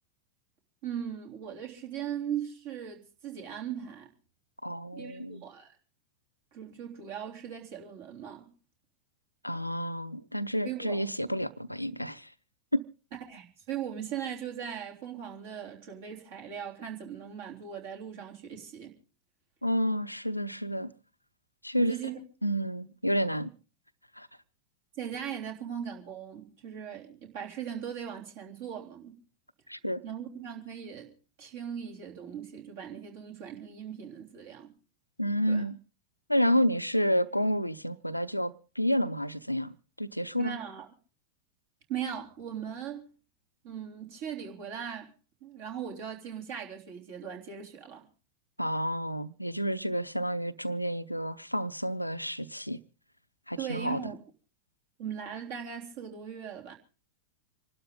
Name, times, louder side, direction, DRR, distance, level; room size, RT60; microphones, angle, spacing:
voice 1, 0.8-4.1 4.9-5.7 6.5-8.5 10.6-11.1 13.1-18.9 21.8-22.2 24.9-29.2 30.0-31.1 31.4-34.7 35.5-35.6 40.3-40.9 41.9-43.1 43.6-45.1 45.4-48.1 53.6-54.2 55.0-56.7, right 8 dB, 50° right, 3.3 m, -39 dB
voice 2, 4.6-5.4 9.4-12.3 12.7-12.8 19.6-20.9 21.6-22.0 22.4-23.5 24.2-24.3 29.7-30.0 35.2-35.8 36.3-40.6 48.6-52.8 53.5-54.0, equal, 90° left, 0.7 m, -30 dB
26.5 x 12.0 x 3.8 m
figure-of-eight pair, 90°, 0 cm